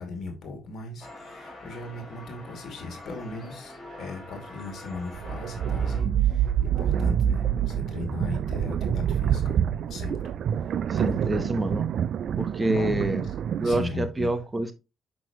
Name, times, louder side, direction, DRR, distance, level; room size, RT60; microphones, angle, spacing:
voice 1, 0.0-9.6 9.9-10.2 10.6-11.5 12.7-13.4 13.6-14.3, left 3 dB, 65° left, 2.5 m, -37 dB
sound 1, 1.0-6.0, left 1 dB, 20° left, 3.3 m, -44 dB
sound 2, 5.0-13.9, right 9 dB, 65° right, 0.3 m, -26 dB
voice 2, 10.9-11.9 12.4-13.2 13.6-14.7, right 1 dB, 20° right, 0.9 m, -27 dB
6.1 x 6.1 x 3.1 m
cardioid pair, 90°, 0 cm